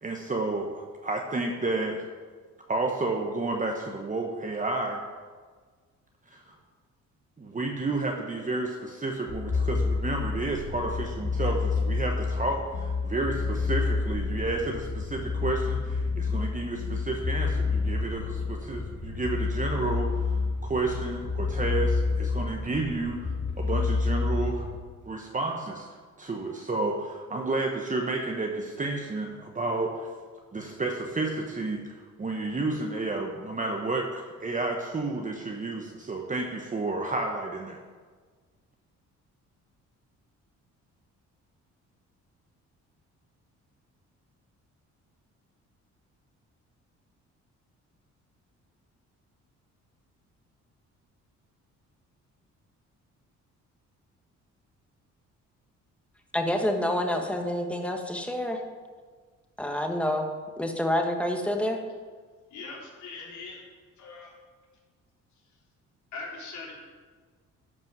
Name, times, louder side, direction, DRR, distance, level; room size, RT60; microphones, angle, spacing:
voice 1, 0.0-2.0 2.7-5.0 6.3-6.5 7.4-20.3 20.6-24.7 25.1-25.9 26.2-30.1 30.5-37.8, right 2 dB, 25° right, 1 dB, 1.1 m, -31 dB
sound 1, 9.3-24.8, left 4 dB, 35° left, 1.3 m, -29 dB
voice 2, 56.3-58.6 59.6-60.3 60.6-61.8, left 1 dB, 5° left, 3 dB, 1.4 m, -27 dB
voice 3, 62.5-63.6 64.0-64.3 66.1-66.7, left 3 dB, 70° left, -3 dB, 3.4 m, -40 dB
12.0 x 5.3 x 6.1 m, 1.5 s
cardioid pair, 90°, 30 cm